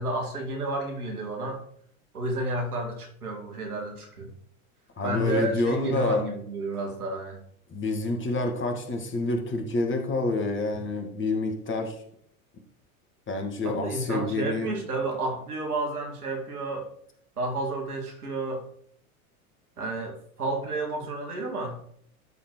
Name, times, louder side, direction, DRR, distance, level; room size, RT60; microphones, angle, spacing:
voice 1, 0.0-1.6 2.1-4.3 5.0-7.4 10.7-10.8 13.6-16.9 17.4-18.6 19.8-21.8, right 2 dB, 90° right, 2 dB, 2.2 m, -31 dB
voice 2, 5.0-6.2 7.7-12.0 13.3-14.7, left 2 dB, 25° left, 3 dB, 2.1 m, -28 dB
12.0 x 4.3 x 4.7 m, 0.64 s
hypercardioid pair, 85°, 44 cm